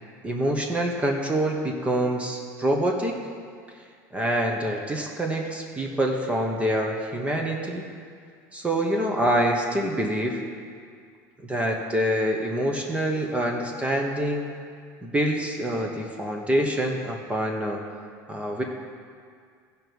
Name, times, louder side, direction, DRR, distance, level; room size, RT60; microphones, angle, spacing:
voice 1, 0.2-3.2 4.1-7.8 8.5-10.4 11.4-14.5 15.0-17.8 18.3-18.6, right 1 dB, 15° right, 1 dB, 1.2 m, -26 dB
15.0 x 5.3 x 4.7 m, 2.1 s
supercardioid pair, 115°, 9 cm